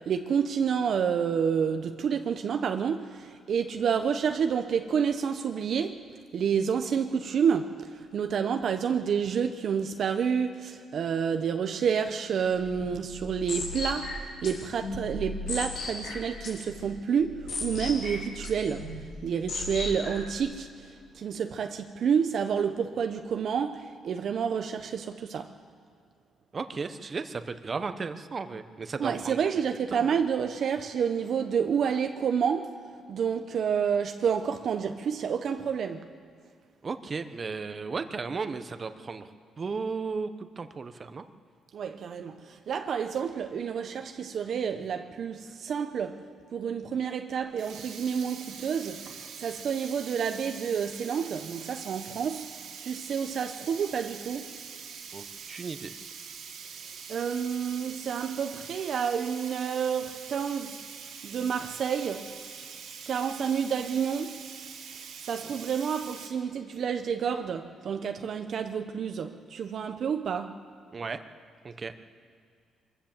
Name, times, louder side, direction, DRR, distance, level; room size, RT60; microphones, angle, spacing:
voice 1, 0.0-25.5 29.0-32.8 33.1-36.1 41.7-52.5 52.8-54.6 57.1-60.8 61.2-62.3 63.1-64.4 65.2-70.6, right 7 dB, 60° right, 0.9 m, -29 dB
sound 1, 12.5-20.4, left 2 dB, 80° left, 5.1 m, -37 dB
voice 2, 26.5-29.4 29.9-30.1 36.8-39.3 39.6-41.2 55.1-55.9 70.9-71.2 71.6-71.9, right 4 dB, 35° right, 1.1 m, -35 dB
Sink (filling or washing), 47.4-66.3, right 6 dB, 80° right, 2.8 m, -44 dB
24.0 x 15.0 x 7.4 m
cardioid pair, 90°, 0 cm